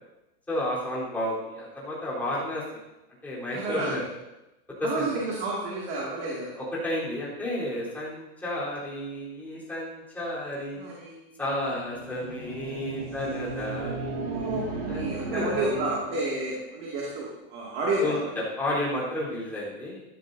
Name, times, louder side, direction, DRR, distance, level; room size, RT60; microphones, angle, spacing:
voice 1, 0.5-2.6 3.2-4.0 4.8-5.1 6.7-10.9 11.4-14.1 14.9-16.0 18.0-18.2 18.6-20.0, left 1 dB, 5° left, -8 dB, 3.9 m, -32 dB
voice 2, 3.5-3.9 4.8-6.5 10.8-11.3 14.3-14.6 14.9-18.3, right 2 dB, 30° right, -4 dB, 2.4 m, -30 dB
sound 1, 11.6-16.2, right 3 dB, 50° right, 3.0 m, -35 dB
15.0 x 13.5 x 2.8 m, 0.97 s
supercardioid pair, 170°, 31 cm